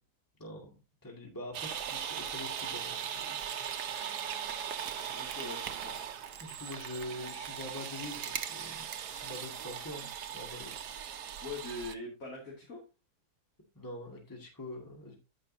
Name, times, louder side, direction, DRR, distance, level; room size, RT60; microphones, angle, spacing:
voice 1, 0.4-0.7 1.0-4.1 6.4-10.8 13.7-15.2, left 1 dB, 10° left, 0 dB, 2.0 m, -45 dB
sound 1, 1.5-11.9, right 8 dB, 80° right, 1.4 m, -39 dB
voice 2, 5.1-6.0 11.4-12.8, left 2 dB, 55° left, -3 dB, 3.0 m, -42 dB
14.5 x 5.5 x 2.7 m, 0.28 s
omnidirectional pair, 1.7 m